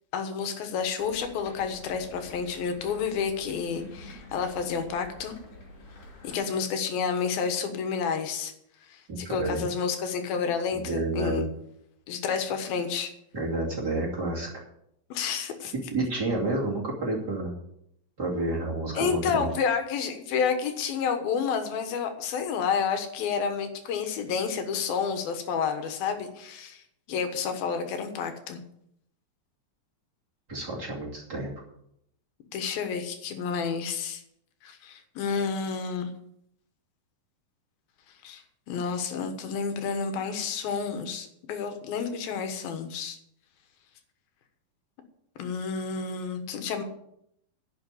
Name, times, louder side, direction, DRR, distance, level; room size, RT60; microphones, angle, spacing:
voice 1, 0.1-5.3 6.2-8.5 8.9-11.4 12.1-13.1 15.1-15.7 18.9-26.8 27.1-28.6 32.5-34.2 34.6-36.1 38.2-43.2 45.4-46.8, left 6 dB, 85° left, 7 dB, 3.2 m, -30 dB
sound 1, 1.0-6.4, left 2 dB, 45° left, 3.5 m, -48 dB
voice 2, 9.1-9.6 10.7-11.4 13.3-14.6 15.9-17.5 18.2-19.5 30.5-31.5, right 2 dB, 30° right, -3 dB, 2.7 m, -30 dB
11.0 x 6.7 x 8.3 m, 0.76 s
omnidirectional pair, 4.1 m